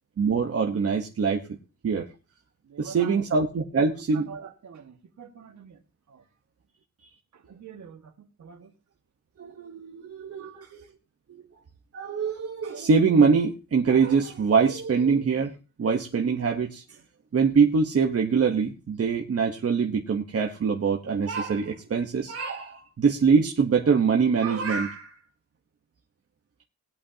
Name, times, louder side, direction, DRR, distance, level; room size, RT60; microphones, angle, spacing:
voice 1, 0.2-1.4 1.8-2.1 2.8-4.3 9.4-10.8 11.3-11.4 11.9-15.5 15.8-16.8 17.3-25.2, right 5 dB, 50° right, 1 dB, 1.2 m, -24 dB
voice 2, 2.6-3.3 4.1-5.8 6.1-6.2 7.3-8.7 10.4-10.7, right 7 dB, 65° right, 5 dB, 1.8 m, -45 dB
19.5 x 8.5 x 2.9 m, 0.32 s
wide cardioid pair, 125°, 31 cm